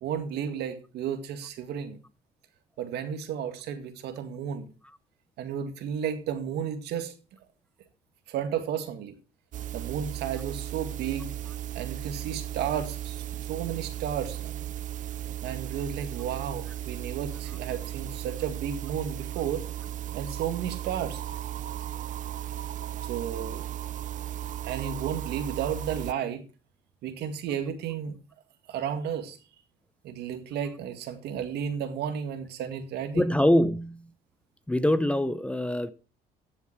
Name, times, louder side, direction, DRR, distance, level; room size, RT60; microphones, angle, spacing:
voice 1, 0.0-2.0 2.8-4.7 5.4-7.1 8.3-9.1 9.7-11.3 11.7-14.7 15.4-19.6 20.1-21.2 23.0-23.7 24.6-26.4 27.0-28.2 28.7-29.4 30.0-33.2, right 8 dB, 75° right, 1.9 m, -33 dB
sound 1, 9.5-26.1, right 12 dB, 50° right, 0.5 m, -36 dB
voice 2, 33.1-34.1 34.7-35.9, left 1 dB, 5° left, 0.6 m, -24 dB
14.0 x 7.2 x 4.6 m
cardioid pair, 110°, 17 cm